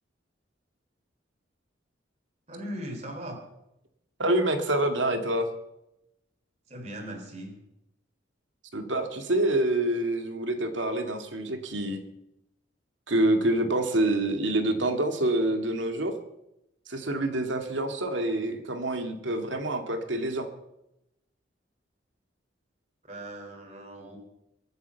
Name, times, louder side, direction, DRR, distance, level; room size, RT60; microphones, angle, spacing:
voice 1, 2.5-3.4 6.7-7.5 23.0-24.2, right 1 dB, 35° right, 2 dB, 3.6 m, -39 dB
voice 2, 4.2-5.5 8.7-12.0 13.1-16.2 16.9-20.5, right 1 dB, 75° right, 5 dB, 2.2 m, -27 dB
23.5 x 8.2 x 7.1 m, 0.86 s
head